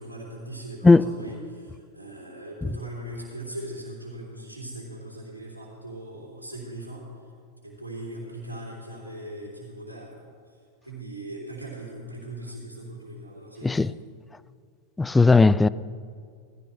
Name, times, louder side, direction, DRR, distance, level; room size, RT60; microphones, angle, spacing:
voice 1, 0.0-7.1 7.6-13.9, right 1 dB, 85° right, 3.3 m, -39 dB
voice 2, 15.0-15.7, left 3 dB, 10° left, 0.3 m, -16 dB
18.5 x 15.0 x 3.4 m
figure-of-eight pair, 90°, 0 cm